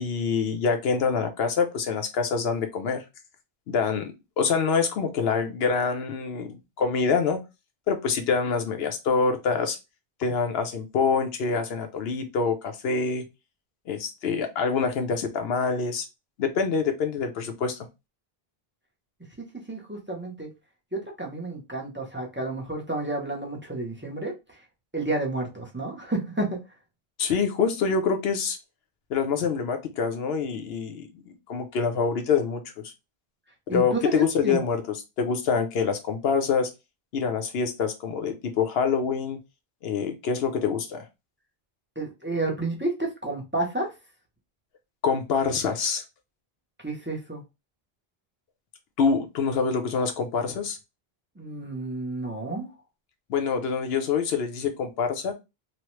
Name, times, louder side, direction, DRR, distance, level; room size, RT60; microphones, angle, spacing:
voice 1, 0.0-3.0 3.7-7.4 7.9-9.8 10.2-13.2 13.9-16.0 16.4-17.8 27.2-28.6 29.1-32.9 33.7-34.8 35.2-36.7 37.1-39.4 39.8-41.1 45.0-46.0 49.0-50.8 53.3-55.3, left 5 dB, 75° left, 0.9 m, -26 dB
voice 2, 19.7-20.5 20.9-24.6 24.9-26.6 33.7-34.6 42.0-43.9 46.8-47.4 51.4-52.7, right 2 dB, 15° right, 0.5 m, -30 dB
3.0 x 2.1 x 3.0 m
omnidirectional pair, 1.0 m